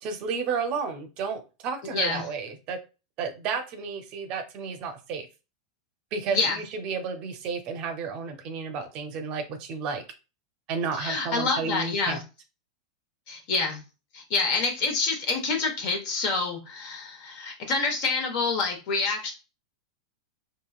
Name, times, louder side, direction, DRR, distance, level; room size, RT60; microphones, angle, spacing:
voice 1, 0.0-2.8 3.2-5.3 6.1-10.0 10.7-12.2, right 5 dB, 40° right, 7 dB, 0.6 m, -32 dB
voice 2, 1.9-2.2 6.3-6.6 10.9-12.2 13.3-13.8 14.1-19.3, left 4 dB, 55° left, 3 dB, 1.1 m, -27 dB
2.9 x 2.7 x 2.3 m, 0.30 s
supercardioid pair, 130°, 3 cm